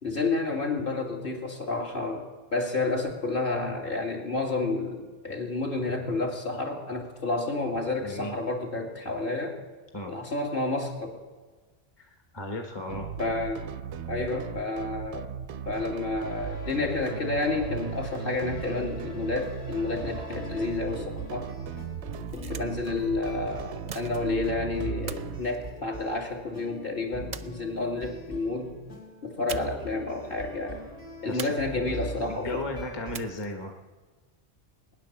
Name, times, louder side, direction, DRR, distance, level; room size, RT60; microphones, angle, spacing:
voice 1, 0.0-9.6 10.1-11.1 13.2-13.7 14.1-15.2 15.7-21.5 22.3-28.7 29.2-30.8 31.2-32.6, left 3 dB, 50° left, 0 dB, 2.4 m, -30 dB
voice 2, 8.0-8.4 9.9-10.1 12.0-13.1 31.3-31.5 32.3-33.7, left 2 dB, 25° left, 3 dB, 1.2 m, -35 dB
sound 1, 12.9-25.4, right 8 dB, 85° right, 0.9 m, -38 dB
sound 2, 16.2-33.3, right 1 dB, 75° left, 4.1 m, -41 dB
sound 3, 22.0-22.9 23.9-24.5 25.1-26.3 27.3-28.1 29.5-30.0 30.2-30.3 31.4-32.1 33.1-33.7, right 6 dB, 45° right, 0.7 m, -42 dB
20.0 x 10.0 x 7.3 m, 1.4 s
omnidirectional pair, 1.1 m